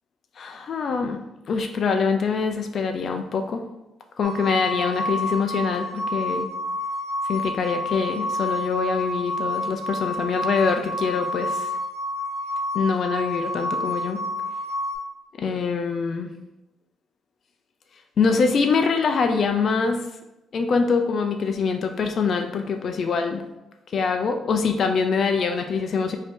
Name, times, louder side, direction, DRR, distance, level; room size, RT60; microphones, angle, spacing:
voice 1, 0.4-1.2 1.5-3.6 4.2-6.5 7.2-11.7 12.7-14.2 15.4-16.3 18.2-20.0 20.5-23.5 23.9-26.2, left 5 dB, 55° left, 5 dB, 0.3 m, -24 dB
sound 1, 4.2-15.0, left 1 dB, 85° right, 1.1 m, -29 dB
4.9 x 2.7 x 3.5 m, 0.95 s
cardioid pair, 90°, 0 cm